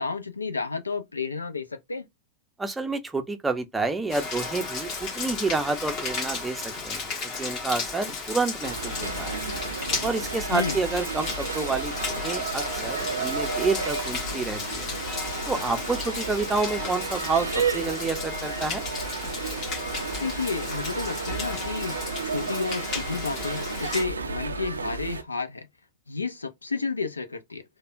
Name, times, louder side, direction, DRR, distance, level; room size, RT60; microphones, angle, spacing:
voice 1, 0.0-2.1 10.5-10.8 20.2-22.0 22.2-25.7 26.1-27.6, left 4 dB, 80° left, 0.4 m, -31 dB
voice 2, 2.6-7.0 7.4-9.4 10.0-14.9 15.5-18.8, right 3 dB, 10° right, 0.6 m, -29 dB
Rain, 4.1-24.0, left 4 dB, 40° left, 1.3 m, -34 dB
sound 1, 8.6-25.2, right 4 dB, 75° right, 0.4 m, -32 dB
3.3 x 2.2 x 2.5 m
figure-of-eight pair, 90°, 0 cm